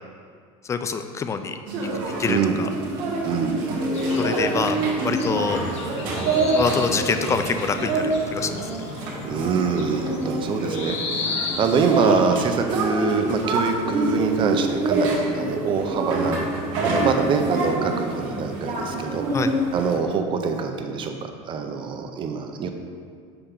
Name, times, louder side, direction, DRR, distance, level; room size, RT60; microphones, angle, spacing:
voice 1, 0.7-1.6 2.2-2.7 4.2-5.6 6.5-8.5 19.3-19.5, left 5 dB, 20° left, 8 dB, 0.3 m, -25 dB
sound 1, 1.7-20.0, right 2 dB, 65° right, 1.5 m, -26 dB
voice 2, 2.3-2.6 3.2-3.6 9.2-16.4 16.8-21.1 21.4-22.7, right 5 dB, 35° right, 5 dB, 0.6 m, -24 dB
sound 2, 3.9-12.4, left 4 dB, 45° left, 0.9 m, -35 dB
6.8 x 3.6 x 4.4 m, 2.1 s
supercardioid pair, 130°, 15 cm